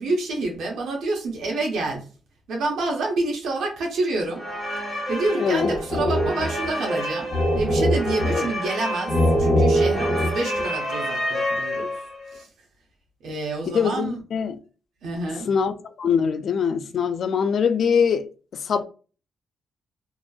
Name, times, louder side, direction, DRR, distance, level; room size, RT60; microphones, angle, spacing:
voice 1, 0.0-2.1 2.5-4.5 5.1-7.3 7.5-11.9 12.3-12.5 13.2-14.2 15.0-15.5, right 2 dB, 80° right, 1.0 m, -28 dB
sound 1, 4.4-12.2, equal, 5° left, 1.2 m, -24 dB
voice 2, 5.3-5.7 8.3-8.5 13.7-14.6 15.5-18.3 18.5-18.8, left 6 dB, 65° left, 0.3 m, -23 dB
2.8 x 2.5 x 2.3 m
cardioid pair, 85°, 0 cm